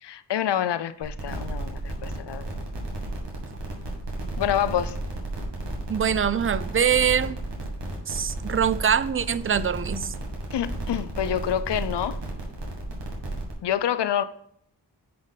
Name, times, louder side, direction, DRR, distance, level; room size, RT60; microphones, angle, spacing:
voice 1, 0.0-2.6 4.4-5.0 10.5-12.2 13.6-14.2, left 10 dB, 70° left, 0.6 m, -27 dB
sound 1, 1.0-13.5, right 2 dB, 70° right, 2.1 m, -33 dB
voice 2, 5.9-7.4 8.1-10.1, right 8 dB, 30° right, 0.5 m, -23 dB
9.4 x 4.2 x 4.0 m
cardioid pair, 40°, 44 cm